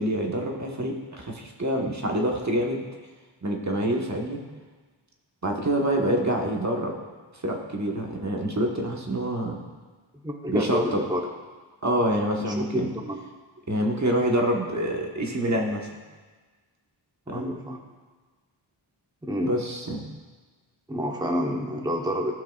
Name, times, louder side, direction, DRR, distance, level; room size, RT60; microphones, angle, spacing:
voice 1, 0.0-2.8 3.4-4.4 5.4-6.9 7.3-9.6 10.5-11.0 11.8-12.9 13.7-15.9 17.3-17.5 19.5-20.1, right 1 dB, 35° right, 0 dB, 1.4 m, -26 dB
voice 2, 10.2-11.2 12.4-13.2 17.3-17.8 19.2-19.6 20.9-22.3, equal, 10° right, 1 dB, 1.0 m, -28 dB
16.0 x 5.7 x 2.4 m, 1.4 s
wide cardioid pair, 60°, 48 cm